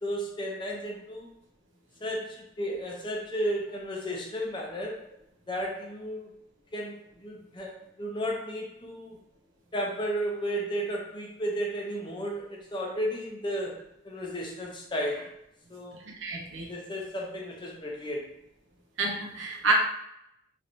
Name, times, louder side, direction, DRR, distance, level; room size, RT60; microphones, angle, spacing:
voice 1, 0.0-1.3 2.0-5.0 5.5-6.3 6.7-9.2 9.7-13.8 14.0-15.3 15.7-16.0 16.7-18.3, equal, 25° left, -1 dB, 0.6 m, -33 dB
voice 2, 16.2-16.7 19.0-19.7, right 4 dB, 85° right, 0 dB, 0.8 m, -28 dB
3.2 x 2.8 x 2.7 m, 0.78 s
head